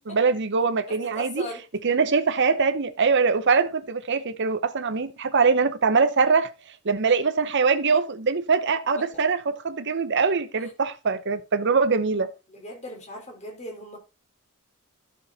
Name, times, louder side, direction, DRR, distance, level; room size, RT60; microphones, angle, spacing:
voice 1, 0.1-1.4 1.8-6.5 6.8-12.3, right 5 dB, 55° right, 0.8 m, -23 dB
voice 2, 0.9-1.6 12.5-14.0, left 1 dB, 35° left, 4.4 m, -38 dB
11.5 x 6.3 x 4.1 m
head